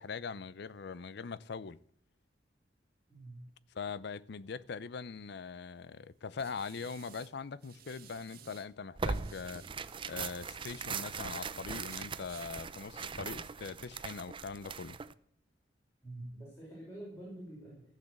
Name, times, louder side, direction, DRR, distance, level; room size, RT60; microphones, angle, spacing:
voice 1, 0.0-1.8 3.7-9.6 10.0-15.0, left 5 dB, 65° left, 0.5 m, -42 dB
voice 2, 3.1-3.4 16.0-17.8, right 1 dB, 15° left, 5.9 m, -46 dB
sound 1, 5.4-8.7 9.0-11.3 11.7-12.5, right 8 dB, 55° right, 1.4 m, -56 dB
Tearing, 9.0-15.1, right 5 dB, 30° right, 0.5 m, -40 dB
15.0 x 6.7 x 8.1 m
head